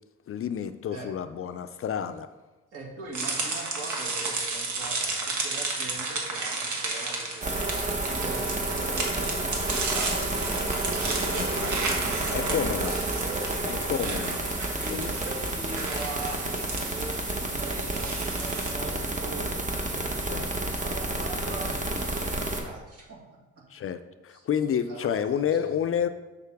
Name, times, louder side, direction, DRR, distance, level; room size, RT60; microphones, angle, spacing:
voice 1, 0.3-2.3 11.4-11.5 12.3-12.9 13.6-14.4 14.9-15.2 18.9-19.0 20.3-20.5 23.7-26.1, left 8 dB, 45° left, 10 dB, 0.5 m, -29 dB
voice 2, 2.7-7.6 8.0-10.6 11.0-13.5 14.0-14.2 14.8-19.5 19.9-23.4 24.3-24.5 24.8-25.7, right 3 dB, 50° right, -2 dB, 2.3 m, -41 dB
sound 1, 3.1-18.7, right 3 dB, 70° right, 1.6 m, -33 dB
sound 2, 7.4-22.6, right 2 dB, 25° right, 1.2 m, -30 dB
6.7 x 6.6 x 3.5 m, 1.1 s
cardioid pair, 90°, 30 cm